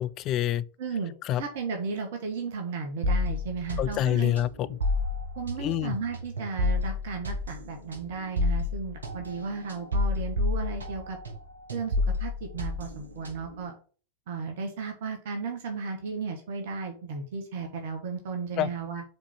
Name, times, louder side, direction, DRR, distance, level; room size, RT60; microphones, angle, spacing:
voice 1, 0.0-0.7 1.2-1.4 3.8-4.8 5.6-6.0 18.6-18.7, left 12 dB, 35° left, 0.4 m, -27 dB
voice 2, 0.8-4.3 5.4-11.2 11.7-11.9 12.2-13.8 14.3-19.0, right 5 dB, 55° right, 1.3 m, -34 dB
sound 1, 3.0-11.4 11.7-13.6, left 2 dB, 75° right, 1.2 m, -30 dB
5.2 x 4.2 x 5.8 m
figure-of-eight pair, 90°, 0 cm